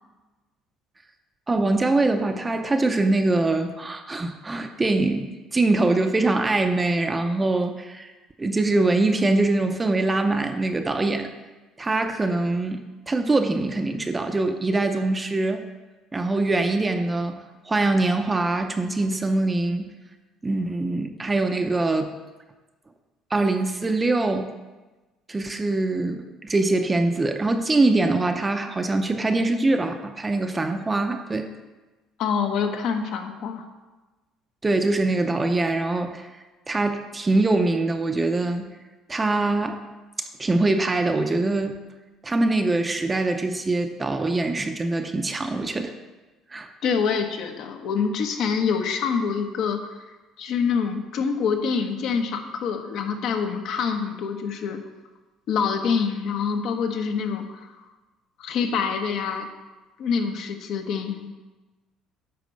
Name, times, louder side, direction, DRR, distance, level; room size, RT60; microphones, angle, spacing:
voice 1, 1.5-8.1 8.4-11.3 11.8-15.6 16.1-17.4 17.7-19.9 20.4-22.1 23.3-24.5 25.3-31.5 34.6-36.3 36.7-38.7 39.1-39.8 40.4-41.8 42.2-45.9 46.5-46.7, right 2 dB, 15° right, 6 dB, 0.6 m, -23 dB
voice 2, 32.2-33.7 46.8-49.8 50.4-54.8 55.5-57.8 58.4-59.5 60.0-61.3, left 6 dB, 65° left, 5 dB, 1.0 m, -26 dB
10.5 x 4.2 x 6.6 m, 1.2 s
cardioid pair, 125°, 0 cm